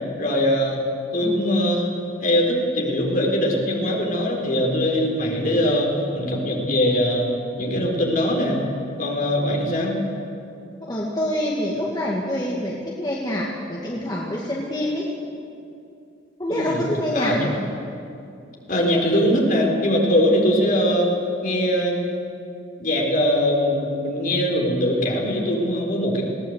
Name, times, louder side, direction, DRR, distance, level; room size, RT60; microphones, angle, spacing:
voice 1, 0.2-0.8 1.1-1.9 2.2-7.3 7.5-8.6 9.0-10.0 16.5-16.8 17.1-17.5 18.7-21.1 21.4-22.1 22.8-26.2, equal, 50° left, 0 dB, 4.2 m, -21 dB
voice 2, 10.9-15.1 16.4-17.4, left 1 dB, 25° left, -3 dB, 2.0 m, -26 dB
20.0 x 17.0 x 8.1 m, 2.6 s
head